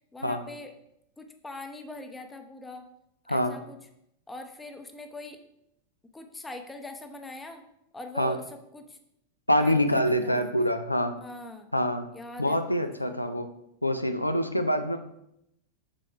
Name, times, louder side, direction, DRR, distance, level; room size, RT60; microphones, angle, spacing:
voice 1, 0.1-0.7 1.2-2.9 3.3-3.8 4.3-5.4 6.1-7.6 7.9-9.0 9.6-10.7 11.2-11.7 12.1-13.4, left 2 dB, 10° left, 6 dB, 0.7 m, -42 dB
voice 2, 3.3-3.6 8.2-8.4 9.5-11.2 11.7-12.1 12.4-13.5 13.8-15.0, equal, 85° left, 8 dB, 0.4 m, -25 dB
6.2 x 4.1 x 4.4 m, 0.80 s
figure-of-eight pair, 90°, 0 cm